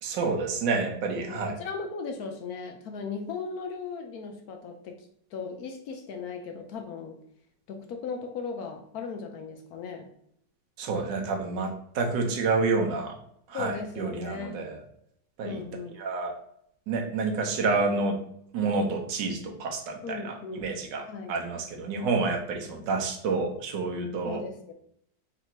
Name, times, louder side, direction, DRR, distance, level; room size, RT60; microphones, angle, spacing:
voice 1, 0.0-1.6 10.8-13.1 13.5-14.8 15.4-15.6 16.0-16.3 16.9-18.2 18.5-24.4, right 3 dB, 70° right, 2 dB, 1.4 m, -29 dB
voice 2, 1.2-7.2 7.7-10.1 13.5-14.7 15.4-16.0 20.0-20.7 21.1-21.4 22.7-22.8 24.2-24.7, left 5 dB, 70° left, 4 dB, 0.9 m, -37 dB
3.8 x 2.8 x 4.3 m, 0.69 s
omnidirectional pair, 2.1 m